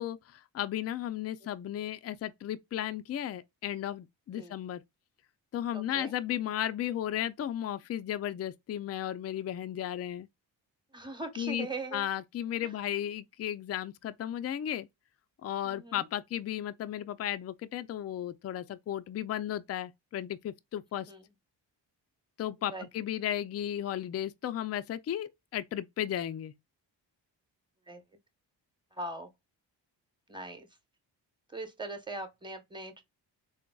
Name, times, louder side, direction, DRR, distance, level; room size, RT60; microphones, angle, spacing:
voice 1, 0.0-4.8 5.5-10.3 11.4-11.7 11.9-14.9 15.4-21.1 22.4-26.5, left 11 dB, 35° left, 0.4 m, -34 dB
voice 2, 5.7-6.1 10.9-12.1 12.6-12.7 15.6-16.1 21.0-21.2 22.6-22.9 27.9-28.0 28.9-29.3 30.3-30.7 31.5-33.0, right 2 dB, 10° right, 1.1 m, -41 dB
3.9 x 2.2 x 2.2 m
cardioid pair, 60°, 46 cm